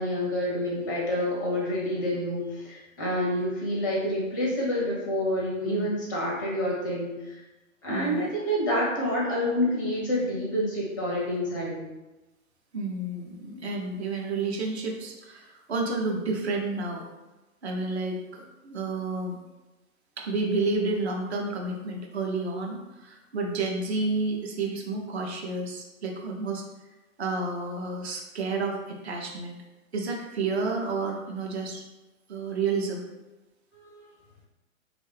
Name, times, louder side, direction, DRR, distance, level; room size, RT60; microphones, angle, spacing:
voice 1, 0.0-7.4 7.8-12.0 33.8-34.0, left 1 dB, 15° left, -4 dB, 0.5 m, -28 dB
voice 2, 7.9-8.3 12.7-17.0 17.6-19.4 20.2-26.6 27.2-29.6 29.9-31.8 32.3-33.1, right 3 dB, 50° right, 1 dB, 0.7 m, -30 dB
2.8 x 2.6 x 3.2 m, 1.1 s
figure-of-eight pair, 120°, 43 cm